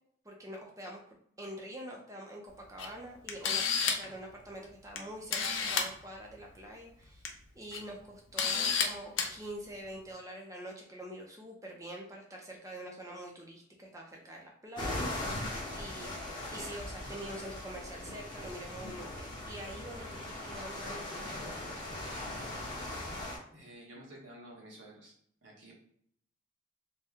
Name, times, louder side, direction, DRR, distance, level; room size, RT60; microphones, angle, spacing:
voice 1, 0.2-1.0 1.4-7.3 7.6-21.8, right 1 dB, 15° right, -1 dB, 0.5 m, -45 dB
Camera, 2.8-2.9 3.3-4.1 5.0-5.1 5.3-5.9 7.0-7.3 7.7-7.8 8.4-8.9 9.2-9.3, left 6 dB, 75° left, 0.5 m, -30 dB
sound 1, 14.8-23.4, left 1 dB, 25° left, 0.9 m, -39 dB
voice 2, 23.5-25.1 25.4-25.8, right 1 dB, 75° right, -3 dB, 1.1 m, -51 dB
2.8 x 2.2 x 3.5 m, 0.64 s
head